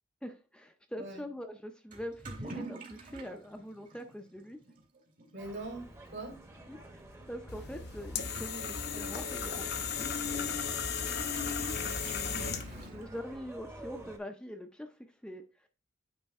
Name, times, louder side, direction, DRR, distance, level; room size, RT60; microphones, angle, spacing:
voice 1, 0.2-4.6 6.7-6.8 7.3-10.1 12.8-15.7, equal, 5° left, 0.5 m, -43 dB
Toilet flush / Liquid, 1.9-13.5, right 2 dB, 45° right, 1.8 m, -50 dB
voice 2, 5.3-6.3 11.0-11.5 11.8-13.1, right 2 dB, 60° right, 2.6 m, -45 dB
sound 1, 5.4-14.2, right 1 dB, 15° right, 0.9 m, -51 dB
sound 2, 7.5-12.9, left 6 dB, 60° left, 0.8 m, -35 dB
9.0 x 3.4 x 4.2 m
head